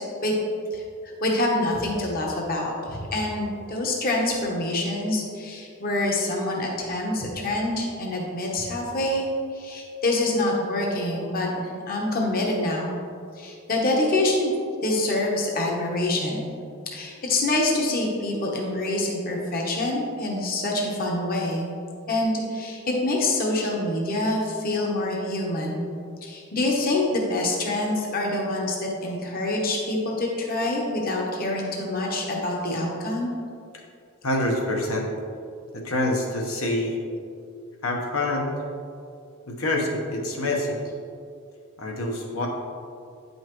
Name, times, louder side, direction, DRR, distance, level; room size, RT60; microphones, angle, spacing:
voice 1, 1.2-9.3 9.5-13.0 13.4-14.5 14.8-16.5 16.9-21.7 22.1-25.9 26.2-33.3, left 2 dB, 45° left, -1 dB, 0.9 m, -26 dB
voice 2, 34.2-35.1 35.7-37.0 37.8-38.5 39.5-40.8 41.8-42.5, left 1 dB, 85° left, 0 dB, 1.1 m, -26 dB
9.0 x 5.5 x 3.0 m, 2.4 s
head